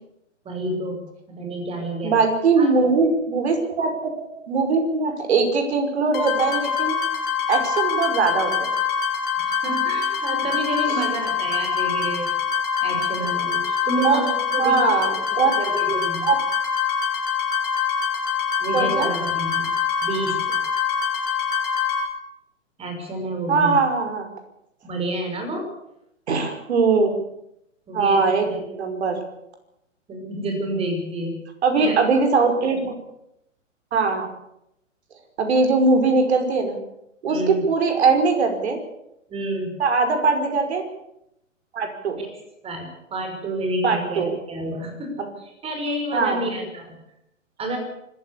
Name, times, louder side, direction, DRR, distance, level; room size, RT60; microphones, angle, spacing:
voice 1, 0.4-1.0 1.3-2.2 2.6-2.7 9.4-12.3 12.8-14.8 15.3-16.3 18.6-19.7 20.0-20.6 22.8-23.8 24.8-25.7 27.9-28.6 30.1-31.4 31.7-32.0 37.3-37.6 39.3-39.8 42.1-42.4 42.6-47.0 47.6-47.8, right 1 dB, 15° right, 5 dB, 5.8 m, -29 dB
voice 2, 2.0-7.0 7.5-8.7 14.0-14.2 14.6-15.6 16.2-16.4 18.7-19.1 23.5-24.3 26.3-27.1 27.9-29.2 31.6-33.0 33.9-34.3 35.4-36.8 37.2-38.8 39.8-40.8 41.7-42.2 43.8-44.3 45.2-45.3 46.1-46.5, right 4 dB, 55° right, 5 dB, 5.5 m, -21 dB
sound 1, 6.1-22.0, left 7 dB, 25° left, 6.3 m, -24 dB
25.0 x 14.0 x 8.4 m, 0.82 s
figure-of-eight pair, 125°, 39 cm